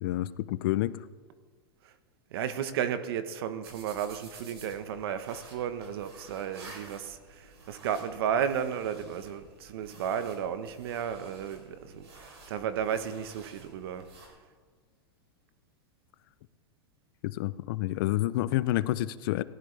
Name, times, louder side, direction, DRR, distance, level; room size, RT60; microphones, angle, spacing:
voice 1, 0.0-1.0 17.2-19.4, left 15 dB, 60° left, 0.5 m, -29 dB
voice 2, 2.3-14.1, right 8 dB, 70° right, 1.1 m, -33 dB
sound 1, 3.6-14.3, right 2 dB, 85° right, 3.7 m, -52 dB
18.0 x 12.5 x 3.4 m
hypercardioid pair, 125°, 13 cm